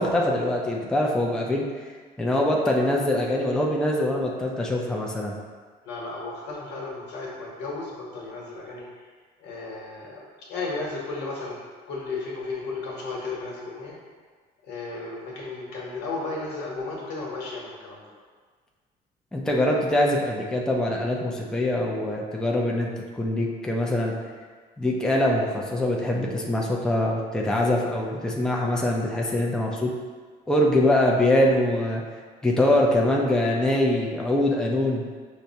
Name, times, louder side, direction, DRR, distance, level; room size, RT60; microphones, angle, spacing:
voice 1, 0.0-1.6 2.2-5.3 19.3-22.9 23.1-24.2 24.8-29.9 30.5-32.0 32.4-35.0, left 1 dB, 5° left, -2 dB, 0.4 m, -23 dB
voice 2, 5.8-8.8 9.4-11.6 11.9-13.9 14.6-18.0, left 3 dB, 85° left, -4 dB, 1.1 m, -34 dB
5.8 x 2.1 x 2.7 m, 1.5 s
cardioid pair, 110°, 17 cm